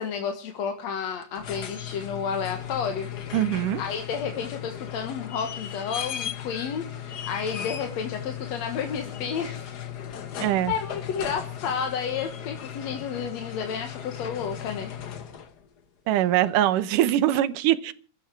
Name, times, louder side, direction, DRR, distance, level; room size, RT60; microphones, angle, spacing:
voice 1, 0.0-3.1 3.8-9.7 10.3-10.4 10.7-14.9, left 7 dB, 65° left, 5 dB, 2.5 m, -31 dB
sound 1, 1.2-15.6 17.3-17.4, left 9 dB, 85° left, 0.8 m, -37 dB
voice 2, 3.3-3.8 10.4-10.7 16.1-17.9, right 12 dB, 90° right, 14 dB, 2.5 m, -22 dB
23.5 x 13.0 x 4.6 m, 0.39 s
omnidirectional pair, 3.6 m